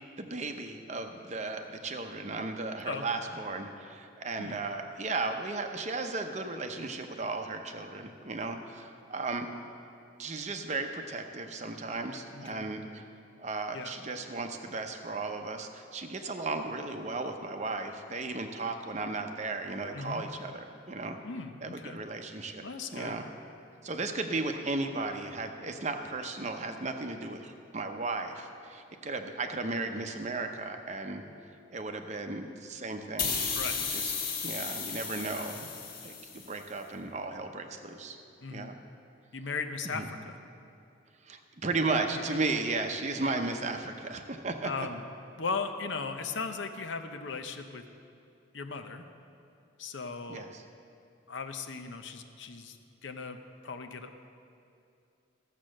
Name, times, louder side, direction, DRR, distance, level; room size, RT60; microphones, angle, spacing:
voice 1, 0.2-9.5 10.2-13.0 13.4-21.2 21.6-23.3 23.8-31.2 31.7-33.4 33.7-34.1 34.4-35.7 36.0-38.2 38.5-38.8 39.8-40.1 41.2-44.9 50.3-50.6, right 3 dB, 35° right, 5 dB, 0.7 m, -35 dB
voice 2, 12.3-12.7 13.7-13.9 19.9-20.2 21.2-22.0 22.6-23.2 33.5-33.9 38.4-38.7 39.3-40.4 43.2-43.3 44.6-45.1 45.4-47.8 48.5-49.1 49.8-50.5 51.3-52.8 53.0-53.4 53.6-54.1, left 4 dB, 70° left, 7 dB, 0.8 m, -37 dB
sound 1, 33.2-36.6, left 5 dB, 50° left, 1.7 m, -34 dB
14.0 x 7.4 x 6.4 m, 2.6 s
head